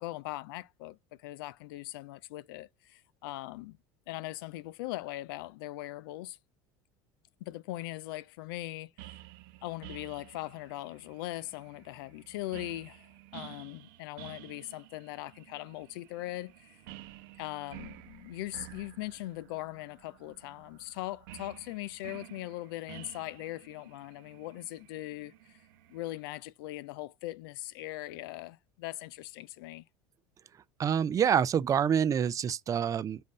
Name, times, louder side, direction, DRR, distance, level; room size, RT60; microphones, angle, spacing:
voice 1, 0.0-3.8 4.1-6.4 7.4-9.2 9.6-16.8 17.4-25.6 25.9-29.8, left 16 dB, 85° left, 0.4 m, -40 dB
sound 1, 9.0-26.3, right 14 dB, 80° right, 0.8 m, -52 dB
voice 2, 30.8-33.2, right 8 dB, 30° right, 0.4 m, -27 dB
7.3 x 2.6 x 5.2 m
supercardioid pair, 115°, 12 cm